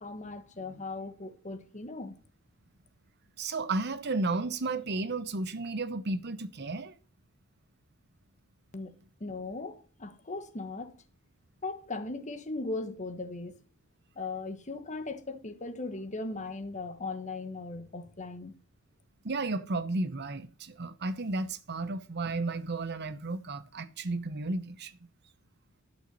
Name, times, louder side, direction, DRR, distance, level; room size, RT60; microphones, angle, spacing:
voice 1, 0.0-2.1 8.7-8.9 9.2-10.9 11.6-13.6 14.1-18.5, left 3 dB, 35° left, 1.4 m, -38 dB
voice 2, 3.4-6.9 19.2-25.0, right 3 dB, 55° right, 0.9 m, -33 dB
11.5 x 6.4 x 6.4 m
head